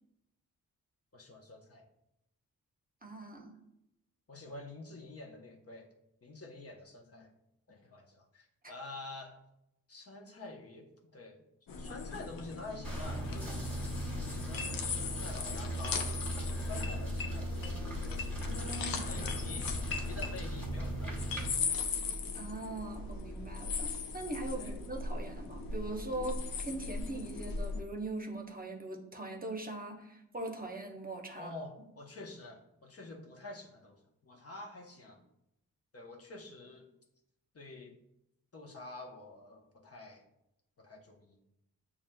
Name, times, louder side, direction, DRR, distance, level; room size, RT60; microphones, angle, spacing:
voice 1, 1.1-1.8 4.3-5.9 6.2-7.3 7.7-9.4 9.9-11.4 11.8-13.5 14.3-17.8 19.1-21.6 24.5-24.8 31.3-35.2 35.9-36.9 37.5-38.0 38.5-40.2 40.8-41.4, left 2 dB, 40° left, 1 dB, 0.8 m, -48 dB
voice 2, 3.0-3.5 18.4-19.2 22.3-31.5, right 2 dB, 25° right, 2 dB, 0.8 m, -41 dB
sound 1, 11.7-27.8, left 4 dB, 70° left, 0.6 m, -38 dB
sound 2, 12.8-21.5, right 1 dB, 5° left, 1.4 m, -38 dB
6.6 x 2.4 x 2.2 m, 0.84 s
supercardioid pair, 45°, 36 cm